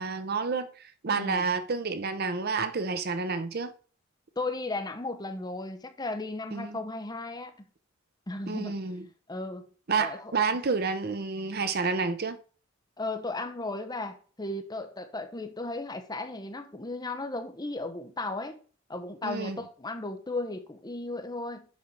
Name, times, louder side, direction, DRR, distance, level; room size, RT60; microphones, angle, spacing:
voice 1, 0.0-3.7 6.5-6.8 8.5-9.1 9.9-12.4 19.2-19.6, right 4 dB, 50° right, 0.7 m, -29 dB
voice 2, 1.1-1.5 4.4-7.7 8.3-8.8 9.3-9.7 10.0-10.3 13.0-18.6 18.9-21.6, left 2 dB, 20° left, 0.9 m, -35 dB
7.4 x 5.5 x 4.7 m
head